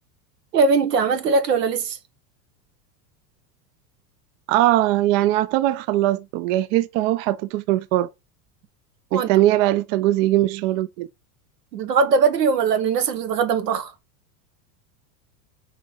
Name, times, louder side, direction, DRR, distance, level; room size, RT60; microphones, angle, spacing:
voice 1, 0.5-2.0 9.1-9.3 11.7-13.9, right 5 dB, 90° right, 1.0 m, -20 dB
voice 2, 4.5-8.1 9.1-11.1, right 15 dB, 50° right, 0.5 m, -20 dB
3.9 x 3.3 x 3.8 m
hypercardioid pair, 100°, 47 cm